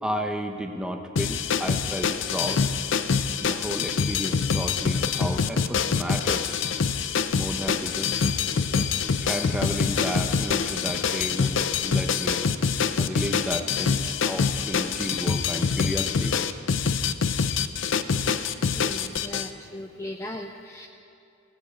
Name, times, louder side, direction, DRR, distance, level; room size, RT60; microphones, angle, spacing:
voice 1, 0.0-2.7 3.4-6.7 7.3-8.1 9.2-12.4 13.0-16.4, equal, 5° right, 4 dB, 0.8 m, -32 dB
sound 1, 1.2-19.5, left 6 dB, 65° left, 0.5 m, -25 dB
voice 2, 18.8-20.9, left 1 dB, 15° left, 3 dB, 0.5 m, -38 dB
16.5 x 7.6 x 8.2 m, 2.7 s
head